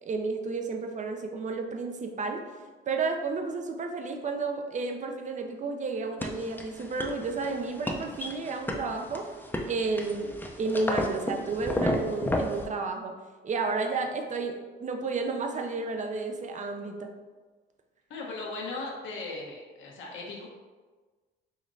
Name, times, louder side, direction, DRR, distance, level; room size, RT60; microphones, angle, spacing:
voice 1, 0.0-2.4 2.9-9.3 9.7-13.2 13.4-17.1, right 3 dB, 40° right, 4 dB, 0.5 m, -32 dB
sound 1, 6.2-12.7, left 1 dB, 10° left, 0.5 m, -33 dB
voice 2, 18.1-20.5, left 3 dB, 75° left, -3 dB, 1.1 m, -37 dB
5.0 x 3.0 x 2.6 m, 1.3 s
cardioid pair, 90°, 20 cm